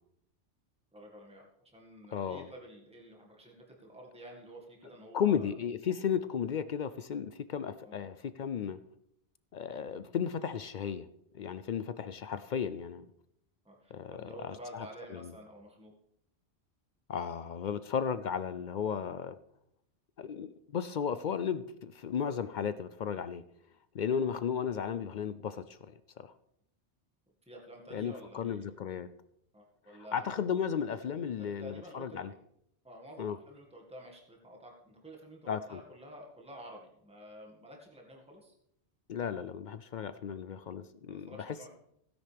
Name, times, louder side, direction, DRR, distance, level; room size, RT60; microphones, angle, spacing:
voice 1, 0.9-5.5 7.8-8.0 13.7-15.9 27.5-28.7 29.5-30.4 31.4-32.4 32.8-38.5 40.3-40.4 41.1-41.7, equal, 5° right, -1 dB, 1.8 m, -50 dB
voice 2, 2.1-2.5 5.1-8.8 9.5-11.1 11.3-13.1 13.9-15.3 17.1-19.4 20.2-23.4 23.9-26.3 27.9-29.1 30.1-32.3 33.2-33.4 35.5-35.8 39.1-41.7, left 7 dB, 60° left, 13 dB, 0.5 m, -34 dB
16.0 x 10.0 x 3.4 m, 0.76 s
omnidirectional pair, 1.1 m